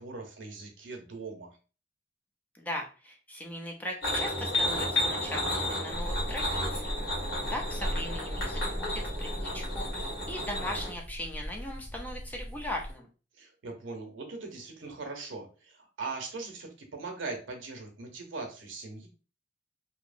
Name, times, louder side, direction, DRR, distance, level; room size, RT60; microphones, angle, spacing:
voice 1, 0.0-1.6 7.4-7.5 13.3-19.1, right 3 dB, 85° right, 3 dB, 0.7 m, -40 dB
voice 2, 2.5-6.8 7.5-13.1, left 1 dB, 10° left, 1 dB, 0.5 m, -39 dB
sound 1, 4.0-10.9, left 1 dB, 70° left, 1.3 m, -32 dB
sound 2, 5.9-12.9, equal, 10° right, 1.0 m, -37 dB
2.7 x 2.0 x 2.4 m, 0.35 s
head